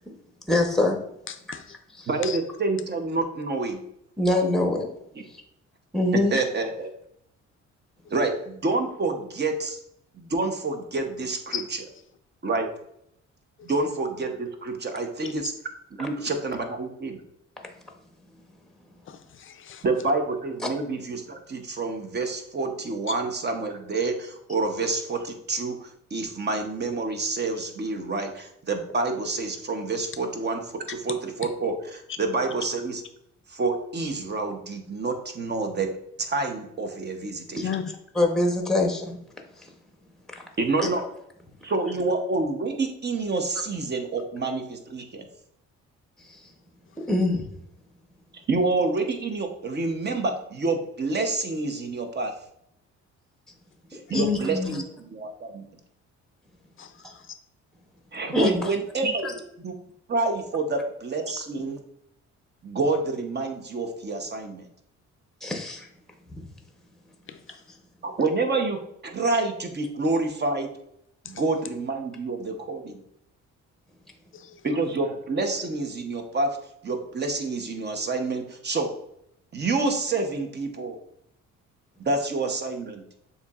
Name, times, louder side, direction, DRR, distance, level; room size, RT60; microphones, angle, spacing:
voice 1, 0.5-1.0 2.0-2.1 4.2-4.9 5.9-6.3 37.6-37.7 38.2-39.2 40.8-40.9 47.1-47.4 54.1-54.8 57.0-57.1 58.3-58.6 59.2-59.3 65.4-65.9 66.3-66.4, left 2 dB, ahead, 3 dB, 0.8 m, -24 dB
voice 2, 1.3-1.6 2.2-2.4 11.5-11.6 13.6-13.7 19.1-19.8 37.6-37.8 56.8-56.9 67.3-67.4 74.3-74.6, left 8 dB, 45° left, 9 dB, 0.5 m, -35 dB
voice 3, 2.1-3.8 5.1-5.2 6.3-6.9 8.1-9.8 10.1-11.8 12.4-12.7 13.6-15.5 16.0-17.2 19.8-33.0 33.5-35.9 36.2-37.7 40.6-41.0 41.6-45.3 48.5-52.3 53.9-55.7 58.1-59.7 60.1-61.8 62.6-64.7 68.0-70.7 71.2-73.0 74.6-76.6 76.8-78.9 79.5-81.0 82.0-83.0, right 3 dB, 35° right, 5 dB, 0.8 m, -28 dB
6.9 x 2.8 x 2.4 m, 0.75 s
cardioid pair, 90°, 30 cm